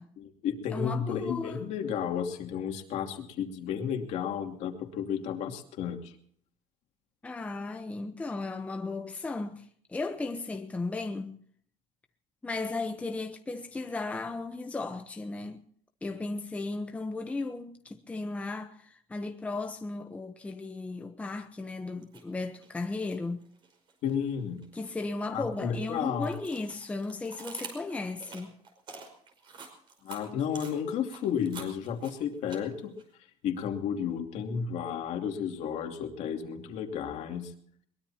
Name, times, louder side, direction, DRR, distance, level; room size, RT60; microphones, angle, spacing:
voice 1, 0.2-6.1 24.0-24.6 25.3-26.3 30.0-32.9 33.4-37.5, left 7 dB, 60° left, 2.7 m, -32 dB
voice 2, 0.7-1.6 7.2-11.4 12.4-15.6 16.0-23.4 24.7-28.5, left 3 dB, 10° left, 0.9 m, -35 dB
sound 1, 22.0-22.2 22.6-24.2 24.6-33.0, right 4 dB, 35° right, 5.1 m, -47 dB
22.5 x 21.5 x 2.9 m
cardioid pair, 160°, 13 cm